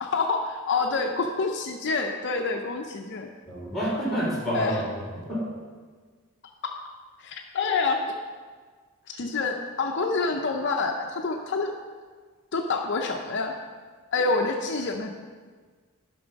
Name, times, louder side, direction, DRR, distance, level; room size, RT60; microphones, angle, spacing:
voice 1, 0.0-3.3 4.5-4.8 6.6-6.8 7.2-8.0 9.1-11.7 12.5-13.6 14.1-15.1, left 4 dB, 55° left, 3 dB, 0.6 m, -27 dB
voice 2, 3.5-5.5, equal, ahead, -4 dB, 2.7 m, -29 dB
10.5 x 6.2 x 5.2 m, 1.5 s
head